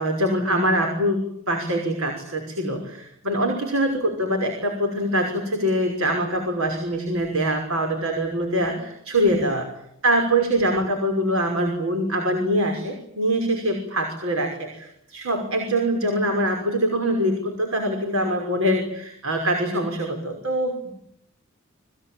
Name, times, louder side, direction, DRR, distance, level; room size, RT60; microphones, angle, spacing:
voice 1, 0.0-9.7 10.0-20.9, right 1 dB, 80° right, 4 dB, 5.9 m, -24 dB
29.0 x 21.5 x 9.0 m, 0.71 s
head